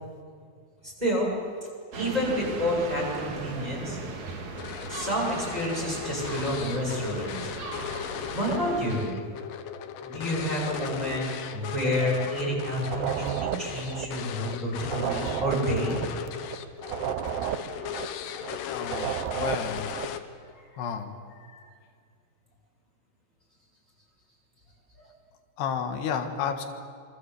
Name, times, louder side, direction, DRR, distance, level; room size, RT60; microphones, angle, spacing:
voice 1, 0.8-1.3 1.9-4.0 4.9-7.5 8.3-9.1 10.0-16.0 21.5-21.6, equal, 10° right, -4 dB, 8.0 m, -29 dB
sound 1, 1.9-9.0, right 3 dB, 50° right, 3.5 m, -38 dB
sound 2, 4.6-20.5, left 9 dB, 65° left, 2.5 m, -37 dB
sound 3, 12.8-14.6 14.8-18.6 18.8-20.2, right 10 dB, 80° right, 3.0 m, -33 dB
voice 2, 18.7-19.9 20.8-21.2 25.6-26.6, left 7 dB, 85° left, 5 dB, 3.6 m, -31 dB
27.0 x 24.5 x 8.4 m, 2.2 s
omnidirectional pair, 4.6 m